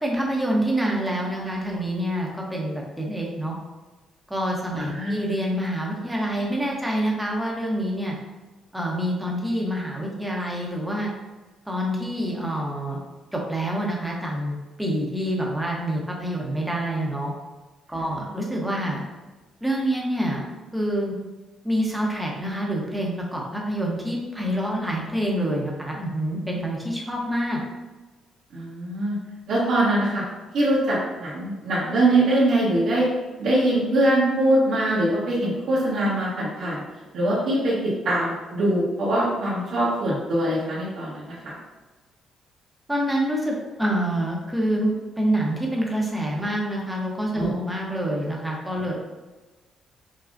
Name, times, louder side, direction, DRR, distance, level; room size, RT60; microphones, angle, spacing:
voice 1, 0.0-3.5 4.3-8.1 8.7-11.1 11.7-13.0 13.3-17.3 17.9-19.0 19.6-20.4 20.7-21.1 21.6-27.6 42.9-48.9, right 1 dB, 5° right, -2 dB, 1.0 m, -26 dB
voice 2, 4.7-5.1 28.5-29.2 29.5-30.2 30.5-33.0 33.4-36.8 37.1-41.5 47.3-47.6, right 1 dB, 75° right, -9 dB, 1.3 m, -23 dB
5.7 x 2.3 x 2.6 m, 1.2 s
cardioid pair, 90°, 0 cm